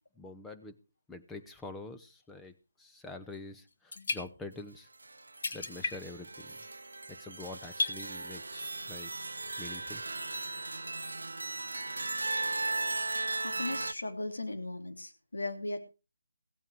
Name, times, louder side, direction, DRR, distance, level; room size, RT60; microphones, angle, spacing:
voice 1, 0.2-0.7 1.1-4.9 5.5-6.6 7.1-10.0, left 2 dB, 5° left, 7 dB, 0.9 m, -46 dB
sound 1, 3.3-3.4 3.7-4.7 5.0-5.1 5.4-6.3 6.6-6.9 7.4-8.2 8.7-8.8, left 3 dB, 50° left, 1.7 m, -35 dB
sound 2, 5.0-13.9, right 2 dB, 75° right, 0.7 m, -37 dB
voice 2, 13.4-15.8, left 2 dB, 75° left, 6 dB, 2.9 m, -37 dB
16.5 x 8.9 x 4.8 m, 0.31 s
figure-of-eight pair, 155°, 0 cm